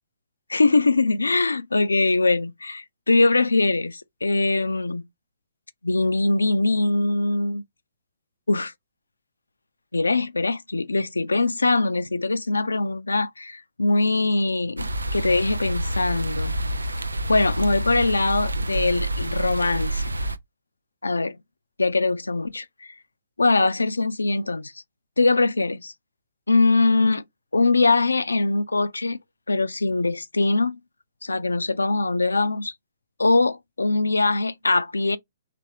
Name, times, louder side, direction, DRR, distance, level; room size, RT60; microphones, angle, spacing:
voice 1, 0.5-5.0 5.8-7.6 8.5-8.7 9.9-16.6 17.3-20.0 21.0-21.4 21.8-22.9 23.4-24.7 25.2-25.9 26.5-27.2 27.5-29.2 29.5-30.8 31.2-32.7 33.2-35.2, left 3 dB, 85° left, 0.3 m, -22 dB
sound 1, 14.8-20.4, right 1 dB, 85° right, 0.4 m, -28 dB
3.3 x 3.3 x 2.8 m
figure-of-eight pair, 125°, 0 cm